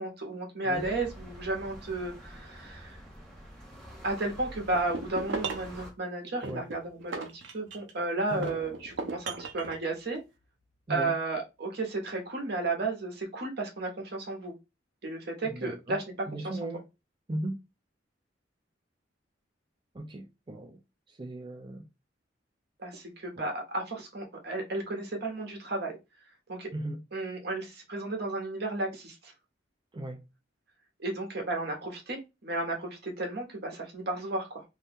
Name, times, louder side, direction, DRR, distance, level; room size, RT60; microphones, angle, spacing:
voice 1, 0.0-3.0 4.0-10.2 10.9-14.5 15.0-16.0 16.4-16.6 22.8-25.9 26.5-26.7 27.1-29.3 31.0-34.6, right 2 dB, 60° right, 1.1 m, -33 dB
sound 1, 0.7-5.9, equal, 5° left, 1.0 m, -47 dB
sound 2, 4.7-5.8 6.4-8.0 8.4-9.8, right 4 dB, 85° right, 0.6 m, -37 dB
sound 3, 8.3-10.8 11.0-11.1, left 1 dB, 75° left, 0.9 m, -51 dB
voice 2, 15.4-16.0 16.3-16.8 17.3-17.6 19.9-20.8 21.1-21.9 23.4-23.5 26.7-27.0 29.9-30.2, right 1 dB, 25° right, 0.5 m, -37 dB
2.7 x 2.3 x 3.5 m
head